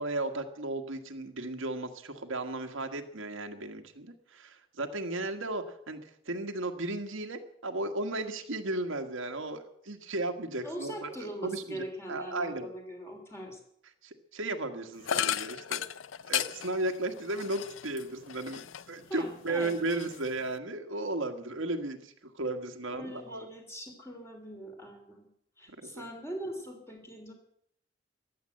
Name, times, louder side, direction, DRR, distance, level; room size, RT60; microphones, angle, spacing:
voice 1, 0.0-12.7 14.0-15.8 16.3-18.6 18.9-23.5 25.8-26.0, right 2 dB, 85° right, 5 dB, 1.6 m, -35 dB
voice 2, 10.6-13.6 19.1-19.7 22.9-25.3 25.6-27.3, right 1 dB, 15° left, 2 dB, 3.1 m, -41 dB
sound 1, 15.0-19.0 19.4-20.6, left 10 dB, 80° left, 0.5 m, -35 dB
15.0 x 11.0 x 7.8 m, 0.70 s
head